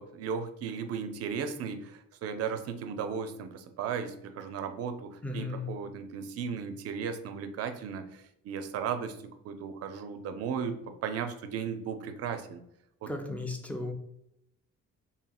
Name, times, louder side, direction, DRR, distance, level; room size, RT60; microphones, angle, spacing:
voice 1, 0.0-9.2 9.4-12.6 13.0-13.1, right 6 dB, 55° right, 8 dB, 0.4 m, -36 dB
voice 2, 5.2-5.7 13.1-13.9, left 2 dB, 5° left, 3 dB, 0.4 m, -35 dB
2.8 x 2.7 x 2.3 m, 0.78 s
cardioid pair, 90°, 30 cm